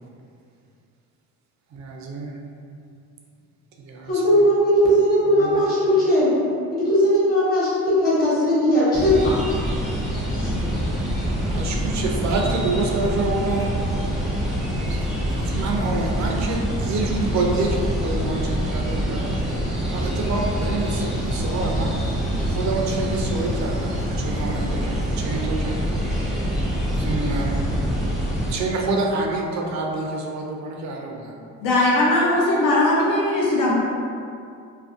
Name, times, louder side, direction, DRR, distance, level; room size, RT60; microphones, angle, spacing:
voice 1, 1.7-2.4 3.8-4.5 5.3-5.6 11.4-13.8 14.9-19.4 19.9-21.9 22.4-25.9 27.0-27.5 28.5-31.3, right 3 dB, 55° right, 0 dB, 0.5 m, -27 dB
voice 2, 4.1-6.3 6.7-9.3 10.4-10.5, equal, 25° left, -9 dB, 1.0 m, -18 dB
sound 1, 8.9-28.5, equal, ahead, 0.6 m, -25 dB
voice 3, 31.6-33.7, left 1 dB, 70° left, -4 dB, 0.7 m, -19 dB
2.5 x 2.1 x 2.5 m, 2.4 s
cardioid pair, 90°, 34 cm